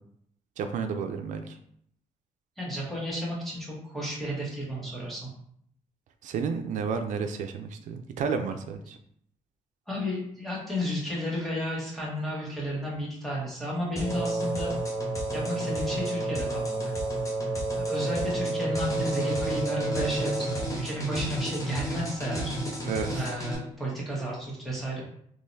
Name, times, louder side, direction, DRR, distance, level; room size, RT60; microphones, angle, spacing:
voice 1, 0.6-1.6 6.2-9.0 22.9-23.3, right 5 dB, 90° right, 7 dB, 0.4 m, -31 dB
voice 2, 2.6-5.3 9.9-14.7 15.3-16.9 17.7-22.5 23.1-25.0, equal, ahead, -5 dB, 1.5 m, -32 dB
sound 1, 14.0-23.6, equal, 25° left, 0.9 m, -34 dB
Wind instrument woodwind instrument, 14.0-20.8, right 3 dB, 65° right, 0.7 m, -31 dB
3.7 x 2.9 x 2.7 m, 0.67 s
cardioid pair, 110°, 13 cm